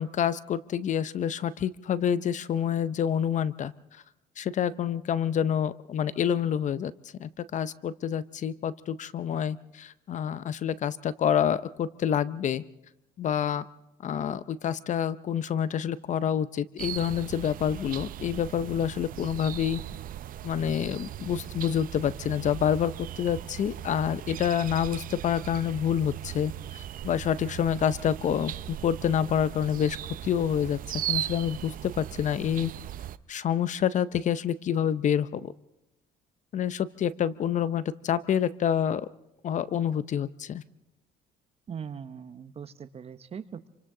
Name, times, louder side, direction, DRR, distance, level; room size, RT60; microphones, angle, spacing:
voice 1, 0.0-3.7 4.4-6.9 7.2-12.6 13.2-13.6 14.0-19.8 20.4-22.9 23.2-30.0 30.2-32.7 33.3-35.5 36.5-39.1 39.4-40.6, left 9 dB, 45° left, 16 dB, 0.6 m, -27 dB
sound 1, 16.8-33.2, right 12 dB, 55° right, 0.6 m, -38 dB
voice 2, 41.7-43.7, right 7 dB, 35° right, 13 dB, 0.9 m, -40 dB
27.5 x 25.0 x 3.8 m, 0.95 s
cardioid pair, 110°, 17 cm